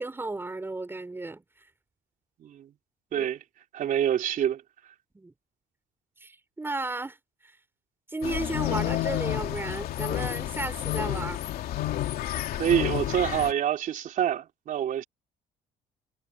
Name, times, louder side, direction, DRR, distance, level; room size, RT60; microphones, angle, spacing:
voice 1, 0.0-1.4 3.1-3.3 5.1-5.3 6.2-7.2 7.4-7.6 8.1-11.4, right 2 dB, 15° right, 5.7 m, -34 dB
voice 2, 3.7-4.6 12.5-15.0, right 10 dB, 55° right, 3.6 m, -26 dB
sound 1, 8.2-13.5, left 13 dB, 70° left, 3.0 m, -30 dB
cardioid pair, 120°, 16 cm